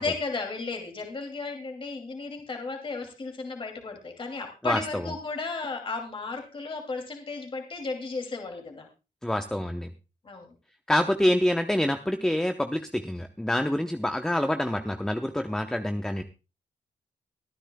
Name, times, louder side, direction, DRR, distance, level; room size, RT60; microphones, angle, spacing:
voice 1, 0.0-8.9 10.2-10.5, left 4 dB, 40° left, 3 dB, 2.7 m, -34 dB
voice 2, 4.6-5.1 9.2-9.9 10.9-16.2, left 1 dB, 5° left, 7 dB, 0.9 m, -26 dB
24.0 x 10.0 x 2.3 m, 0.29 s
cardioid pair, 90°, 14 cm